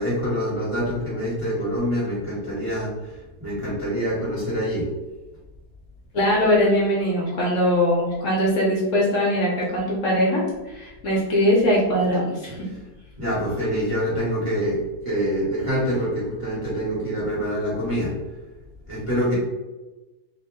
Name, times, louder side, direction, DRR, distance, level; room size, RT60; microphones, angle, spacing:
voice 1, 0.0-4.8 13.2-18.1 18.9-19.3, equal, 25° right, -9 dB, 1.0 m, -25 dB
voice 2, 6.1-12.7, equal, 60° left, -5 dB, 1.0 m, -21 dB
2.8 x 2.0 x 3.4 m, 1.1 s
omnidirectional pair, 1.6 m